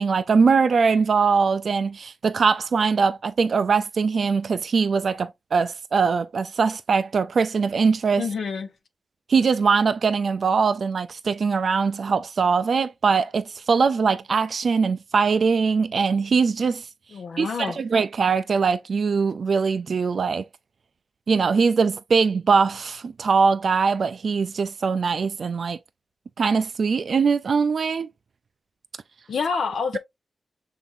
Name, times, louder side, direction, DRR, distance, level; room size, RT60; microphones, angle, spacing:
voice 1, 0.0-8.2 9.3-16.9 17.4-20.4 21.3-25.8 26.4-28.1, right 5 dB, 70° right, 0.3 m, -22 dB
voice 2, 8.2-8.7 17.1-17.8 29.3-30.0, left 5 dB, 80° left, 0.8 m, -27 dB
5.8 x 3.7 x 2.5 m
cardioid pair, 45°, 0 cm